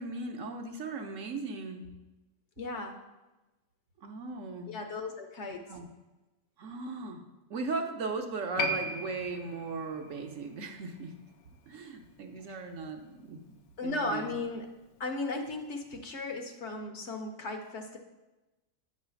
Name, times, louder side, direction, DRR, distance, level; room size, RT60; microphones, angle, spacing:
voice 1, 0.0-1.9 4.0-4.7 5.7-5.9 6.6-7.2 7.5-11.1 11.7-13.5 13.8-14.4, right 3 dB, 65° right, 4 dB, 1.0 m, -37 dB
voice 2, 2.6-3.0 4.7-5.8 12.5-12.6 13.8-14.7 15.0-18.0, left 2 dB, 60° left, 4 dB, 0.9 m, -36 dB
Piano, 8.6-15.5 15.8-15.9, left 1 dB, 85° left, 1.2 m, -40 dB
9.4 x 3.2 x 6.8 m, 1.1 s
omnidirectional pair, 1.5 m